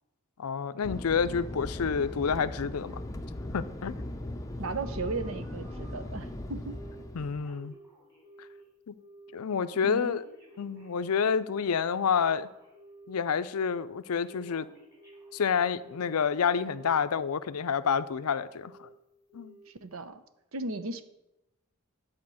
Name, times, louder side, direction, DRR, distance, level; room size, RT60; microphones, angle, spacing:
voice 1, 0.4-3.0 3.5-3.9 7.1-7.7 8.9-9.0 9.3-10.2 10.6-12.5 13.1-14.7 15.3-18.9 19.3-19.6, left 6 dB, 75° left, 14 dB, 0.5 m, -28 dB
Fixed-wing aircraft airplane, 0.8-7.5, left 1 dB, 15° left, 0.6 m, -39 dB
Telephone, 2.8-6.1 6.7-7.0 7.3-8.7 9.0-9.4 9.7-13.1 13.5-13.9 14.1-16.2 16.6-17.4 17.8-18.2 18.5-18.9 19.3-19.7 20.0-20.1, right 1 dB, 15° right, 3.1 m, -53 dB
voice 2, 4.6-6.8 9.8-10.2 19.7-20.2 20.5-21.0, right 3 dB, 65° right, 11 dB, 0.8 m, -36 dB
11.0 x 4.4 x 7.7 m, 0.92 s
head